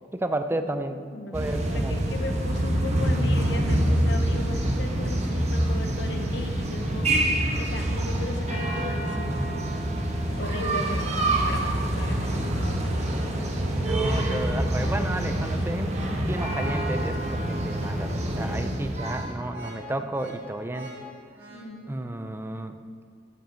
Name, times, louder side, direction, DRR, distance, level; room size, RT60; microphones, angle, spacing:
voice 1, 0.1-1.0 1.3-2.0 13.7-15.9 16.2-20.9 21.9-22.8, right 1 dB, 15° right, 8 dB, 0.5 m, -32 dB
voice 2, 0.9-1.4 1.7-7.3 7.6-9.4 10.4-11.1 11.4-13.1 21.5-21.9, left 2 dB, 80° left, 5 dB, 1.0 m, -37 dB
sound 1, 1.3-19.3, right 1 dB, 40° right, 1.2 m, -26 dB
sound 2, 14.7-21.6, equal, 70° right, 1.8 m, -44 dB
12.0 x 7.6 x 4.6 m, 2.1 s
head